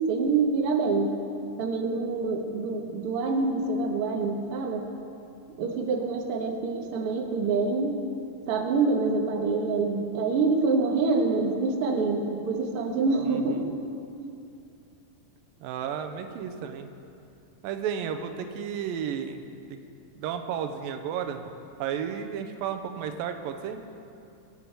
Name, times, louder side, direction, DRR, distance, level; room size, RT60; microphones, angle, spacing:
voice 1, 0.1-1.1 1.6-4.8 5.6-7.9 8.5-13.7 14.2-14.3, right 4 dB, 55° right, 2 dB, 1.7 m, -26 dB
voice 2, 13.2-13.7 15.6-16.9 17.6-19.4 19.7-19.8 20.2-21.4 21.8-23.8, right 8 dB, 90° right, 7 dB, 2.6 m, -33 dB
23.5 x 8.5 x 4.6 m, 2.6 s
omnidirectional pair, 3.9 m